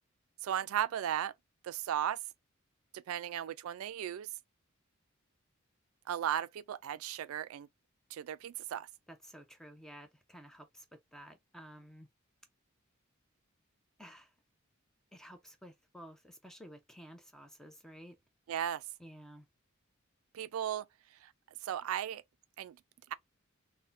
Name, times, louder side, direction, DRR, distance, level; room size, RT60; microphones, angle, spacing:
voice 1, 0.4-1.3 1.6-2.2 2.9-4.3 6.1-7.7 8.1-8.9 18.5-18.8 20.3-20.8 21.2-21.3 21.6-22.2 22.6-22.8, right 10 dB, 80° right, 0.3 m, -36 dB
voice 2, 9.1-12.1 14.0-14.3 15.1-18.2 19.0-19.5, equal, ahead, 0.6 m, -53 dB
3.7 x 2.2 x 2.5 m
head